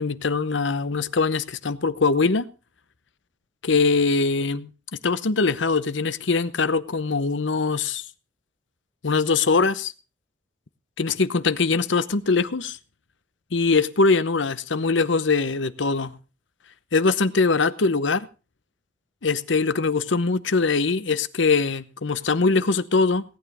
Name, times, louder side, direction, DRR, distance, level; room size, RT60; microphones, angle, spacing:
voice 1, 0.0-2.5 3.6-4.7 5.0-8.1 9.0-9.9 11.0-12.8 13.5-16.1 16.9-18.3 19.2-23.2, left 4 dB, 80° left, 0.9 m, -22 dB
17.5 x 9.3 x 4.8 m
head